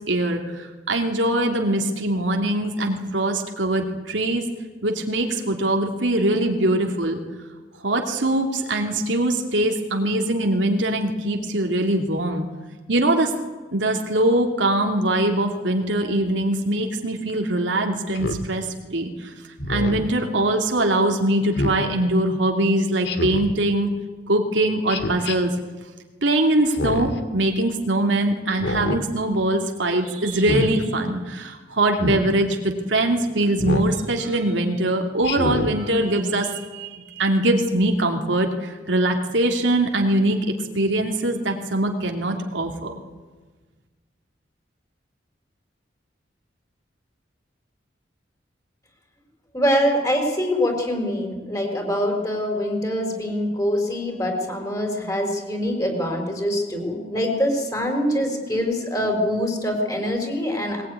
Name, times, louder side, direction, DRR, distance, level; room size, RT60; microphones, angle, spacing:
voice 1, 0.1-4.5 4.8-7.2 7.8-12.4 12.9-13.3 13.7-19.4 19.7-23.9 24.3-25.5 26.2-40.4 40.7-42.9, right 1 dB, 90° right, 2 dB, 2.5 m, -22 dB
Speech synthesizer, 18.1-18.5 19.6-20.1 21.5-21.8 23.0-23.5 24.9-25.4 26.7-27.2 28.5-29.0 30.3-30.7 31.9-32.2 33.6-33.9 35.2-35.7, left 1 dB, 65° left, 2.1 m, -26 dB
voice 2, 49.5-60.8, equal, 20° left, 2 dB, 4.4 m, -24 dB
20.5 x 20.0 x 9.5 m, 1.3 s
head